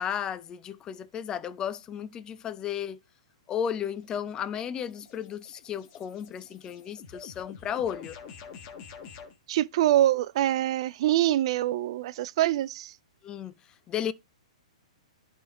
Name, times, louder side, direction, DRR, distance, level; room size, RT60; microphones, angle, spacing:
voice 1, 0.0-3.0 3.5-8.2 13.2-13.5 13.9-14.1, left 8 dB, 20° left, 0.5 m, -34 dB
sound 1, 3.9-9.4, left 6 dB, 35° left, 1.5 m, -48 dB
voice 2, 9.5-12.9, right 13 dB, 50° right, 0.3 m, -25 dB
11.0 x 3.6 x 3.6 m
hypercardioid pair, 130°, 4 cm